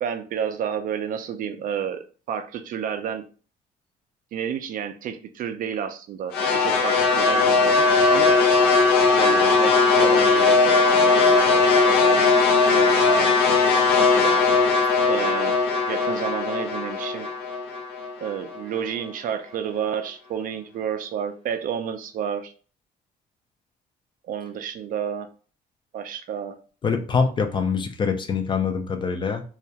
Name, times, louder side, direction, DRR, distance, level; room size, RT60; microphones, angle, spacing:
voice 1, 0.0-3.2 4.3-8.4 9.2-14.5 15.1-15.6 15.9-17.3 18.2-22.5 24.3-25.3 25.9-26.6, right 8 dB, 55° right, 0.4 m, -30 dB
sound 1, 6.3-18.6, left 4 dB, 80° left, 0.5 m, -19 dB
voice 2, 26.8-29.4, left 5 dB, 30° left, 0.4 m, -24 dB
2.3 x 2.1 x 2.7 m
cardioid pair, 110°, 17 cm